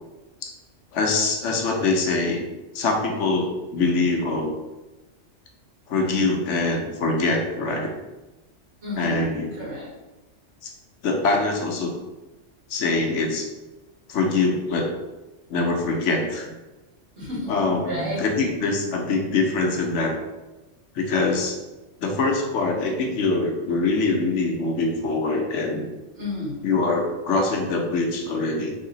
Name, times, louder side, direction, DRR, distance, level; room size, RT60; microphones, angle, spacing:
voice 1, 0.9-2.4 2.7-4.5 5.9-7.9 9.0-9.5 10.6-10.7 11.0-12.0 12.7-13.5 14.1-14.9 15.5-16.5 17.5-20.2 20.9-21.6 22.0-25.8 26.6-28.7, left 3 dB, 75° left, 2 dB, 1.0 m, -23 dB
voice 2, 8.8-9.2 9.6-9.9 17.2-17.5 17.9-18.2 21.2-21.3 26.1-26.6, left 1 dB, 65° right, -7 dB, 1.9 m, -31 dB
3.3 x 2.9 x 3.8 m, 1.1 s
omnidirectional pair, 1.3 m